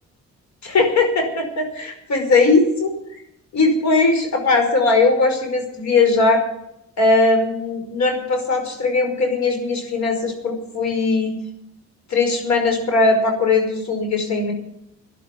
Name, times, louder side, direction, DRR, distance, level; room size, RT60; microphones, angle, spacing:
voice 1, 0.6-2.9 3.5-6.5 7.0-11.3 12.1-14.5, left 3 dB, 65° left, 5 dB, 5.2 m, -19 dB
13.0 x 11.0 x 8.5 m, 0.77 s
cardioid pair, 90°, 30 cm